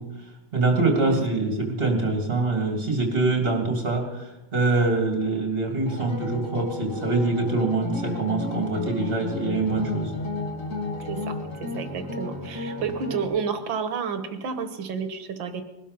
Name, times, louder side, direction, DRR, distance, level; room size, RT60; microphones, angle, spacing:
voice 1, 0.0-10.1, right 3 dB, 30° right, 2 dB, 3.1 m, -24 dB
sound 1, 5.9-13.2, left 3 dB, 40° left, 2.8 m, -33 dB
voice 2, 11.6-15.6, right 6 dB, 85° right, 8 dB, 2.1 m, -30 dB
21.5 x 12.5 x 5.4 m, 1.0 s
omnidirectional pair, 2.1 m